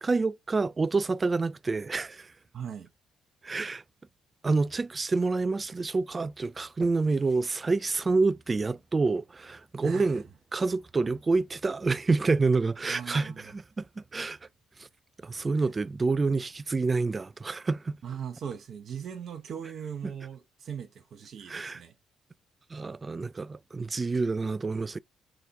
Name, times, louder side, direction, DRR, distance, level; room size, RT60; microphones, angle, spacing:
voice 1, 0.0-2.3 3.4-3.8 4.4-10.2 10.5-14.4 14.8-14.9 15.2-18.0 21.5-21.8 22.7-25.0, right 3 dB, 30° right, 0.3 m, -28 dB
voice 2, 2.5-2.9 9.8-10.2 12.9-13.5 15.6-15.7 18.0-21.9, right 8 dB, 50° right, 0.7 m, -39 dB
4.0 x 3.8 x 3.4 m
figure-of-eight pair, 45°, 0 cm